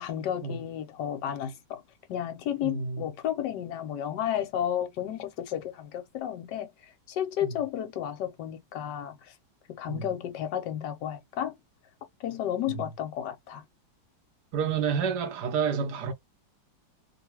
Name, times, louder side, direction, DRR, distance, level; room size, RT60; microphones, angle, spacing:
voice 1, 0.0-1.8 2.1-9.3 9.8-11.6 12.2-13.6, left 10 dB, 65° left, 1.3 m, -32 dB
voice 2, 2.6-3.0 7.4-7.5 9.9-10.1 12.7-12.8 14.5-16.1, right 6 dB, 65° right, 1.2 m, -29 dB
3.3 x 2.2 x 2.9 m
omnidirectional pair, 2.1 m